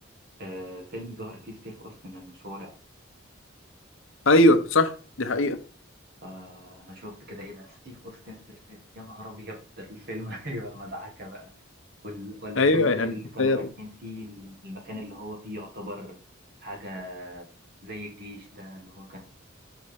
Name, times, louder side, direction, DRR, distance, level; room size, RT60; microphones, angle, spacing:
voice 1, 0.4-2.8 6.2-11.5 12.0-16.2 16.6-17.4 17.8-19.2, equal, 50° right, 1.8 m, -40 dB
voice 2, 4.3-5.6 12.6-13.1 13.4-13.7, left 2 dB, 75° left, 0.8 m, -20 dB
5.9 x 4.2 x 5.1 m
head